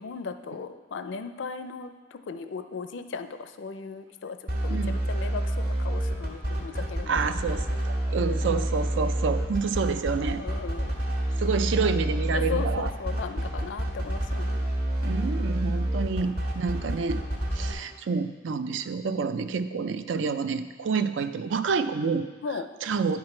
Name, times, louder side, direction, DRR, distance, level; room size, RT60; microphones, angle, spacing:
voice 1, 0.0-7.3 10.4-11.0 12.3-14.6 19.4-19.5 20.9-21.0 22.4-22.7, left 4 dB, 70° left, 9 dB, 0.5 m, -37 dB
sound 1, 4.5-17.7, right 1 dB, 50° right, 1.5 m, -28 dB
voice 2, 7.0-10.4 11.4-12.9 15.0-17.2 17.5-22.3 22.8-23.2, right 5 dB, 70° right, 11 dB, 0.4 m, -28 dB
9.6 x 6.0 x 4.4 m, 1.3 s
head